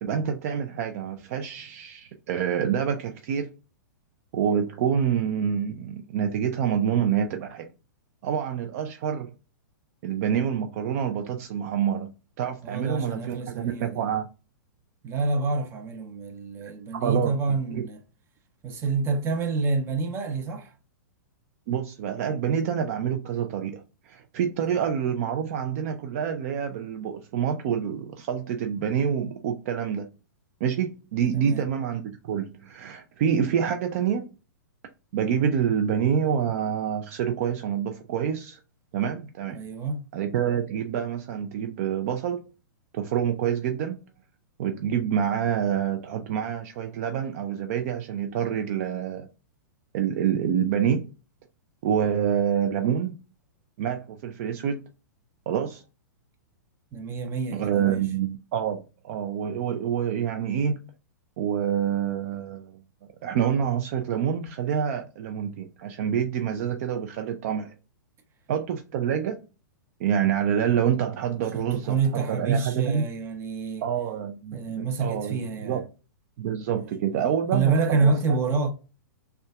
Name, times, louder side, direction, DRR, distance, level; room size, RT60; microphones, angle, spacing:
voice 1, 0.0-3.5 4.3-7.7 8.2-9.3 10.0-14.3 17.0-17.8 21.7-30.1 30.6-34.3 35.1-38.6 38.9-39.6 40.1-42.4 42.9-44.0 44.6-49.3 49.9-51.1 51.8-53.2 53.8-54.8 55.5-55.8 57.5-60.8 61.4-62.7 63.2-67.7 68.5-69.4 70.0-73.1 73.8-75.8 76.4-78.4, right 8 dB, 45° right, 0.4 m, -27 dB
voice 2, 12.6-14.0 15.0-18.0 18.6-20.7 24.6-24.7 31.3-31.6 39.5-40.1 56.9-58.0 71.5-73.8 74.5-75.8 76.7-76.9 77.5-78.7, right 4 dB, 25° right, 0.8 m, -27 dB
6.3 x 2.3 x 2.3 m
figure-of-eight pair, 110°, 10 cm